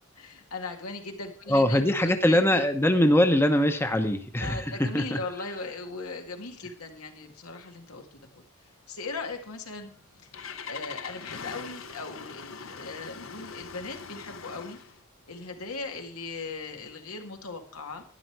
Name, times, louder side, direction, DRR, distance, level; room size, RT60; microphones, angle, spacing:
voice 1, 0.2-2.6 4.4-8.4 8.9-9.9 10.7-14.8 15.3-18.0, left 3 dB, 90° left, 4 dB, 2.0 m, -39 dB
voice 2, 1.5-5.2, left 1 dB, 10° left, 7 dB, 0.8 m, -22 dB
Engine starting, 9.9-15.0, left 6 dB, 65° left, 1.0 m, -42 dB
12.0 x 10.5 x 4.6 m, 0.43 s
head